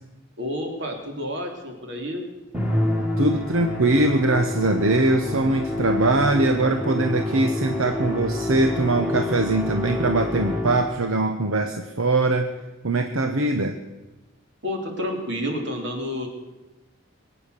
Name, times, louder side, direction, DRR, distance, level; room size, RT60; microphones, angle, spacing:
voice 1, 0.4-2.2 14.6-16.3, left 1 dB, 55° right, 2 dB, 3.1 m, -29 dB
Musical instrument, 2.5-11.1, left 1 dB, 5° right, 2.1 m, -27 dB
voice 2, 3.2-12.5 12.8-13.8, right 2 dB, 75° right, 6 dB, 1.0 m, -22 dB
23.0 x 9.1 x 6.7 m, 1.1 s
head